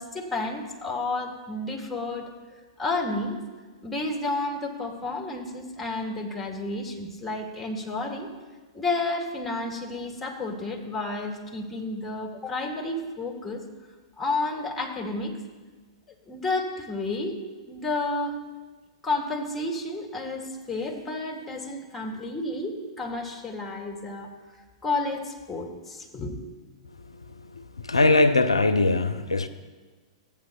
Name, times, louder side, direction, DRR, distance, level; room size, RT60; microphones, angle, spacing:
voice 1, 0.0-2.3 2.8-3.4 3.8-8.3 8.7-13.6 14.2-15.3 16.3-17.4 17.7-18.4 19.0-24.3 24.8-26.4, left 2 dB, 5° left, 1.9 m, -31 dB
voice 2, 27.2-29.5, left 2 dB, 85° left, 0.4 m, -22 dB
15.5 x 8.5 x 2.3 m
figure-of-eight pair, 105°, 3 cm